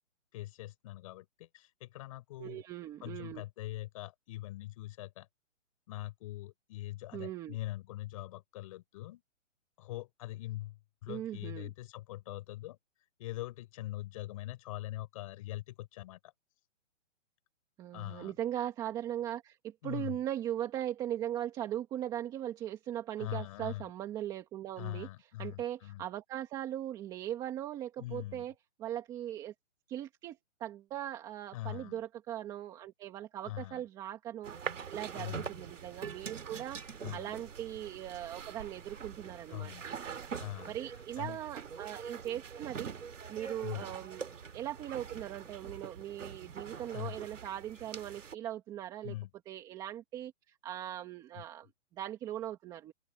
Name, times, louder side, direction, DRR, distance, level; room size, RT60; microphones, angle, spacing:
voice 1, 0.3-2.6 3.0-5.3 5.9-9.2 9.8-12.8 13.2-16.3 17.9-18.3 19.8-20.2 23.2-23.9 24.8-26.1 28.0-28.5 31.5-32.0 33.4-33.8 35.1-35.6 37.0-37.4 39.5-39.9 40.4-40.7 41.2-41.4 43.6-43.9 46.9-47.2 49.0-49.3 51.3-51.4, left 16 dB, 25° left, 6.9 m, -42 dB
voice 2, 2.4-3.4 7.1-7.6 11.1-11.7 17.8-25.1 25.4-28.5 28.8-29.5 29.9-34.6 34.9-40.3 40.7-42.9 43.3-49.1 49.5-52.9, right 11 dB, 10° right, 1.9 m, -39 dB
sound 1, 34.4-48.3, right 6 dB, 75° right, 2.7 m, -44 dB
open air
hypercardioid pair, 170°, 38 cm